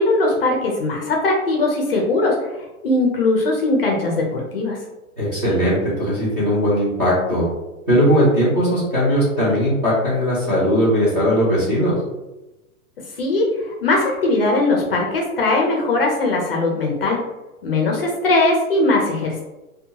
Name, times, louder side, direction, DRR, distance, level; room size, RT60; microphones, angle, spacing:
voice 1, 0.0-2.4 2.8-4.8 13.2-17.2 17.6-19.4, left 2 dB, 40° left, 0 dB, 0.5 m, -19 dB
voice 2, 5.2-7.4 7.9-12.0, equal, 15° right, -10 dB, 0.5 m, -18 dB
2.6 x 2.3 x 2.7 m, 1.0 s
hypercardioid pair, 170°, 43 cm